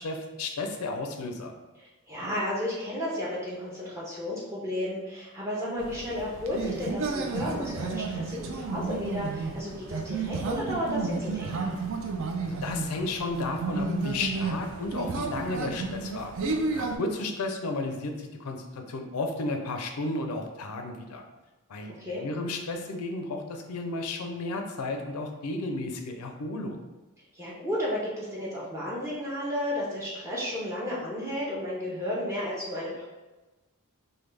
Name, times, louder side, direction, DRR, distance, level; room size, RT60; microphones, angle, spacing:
voice 1, 0.0-1.5 12.4-16.3 16.7-21.2 21.7-26.8, left 2 dB, 80° left, 4 dB, 0.4 m, -33 dB
voice 2, 1.8-11.7 22.0-22.2 27.3-33.0, left 1 dB, 10° right, -7 dB, 0.5 m, -33 dB
sound 1, 5.8-17.0, right 3 dB, 60° right, 0.4 m, -32 dB
3.3 x 2.2 x 3.2 m, 1.1 s
head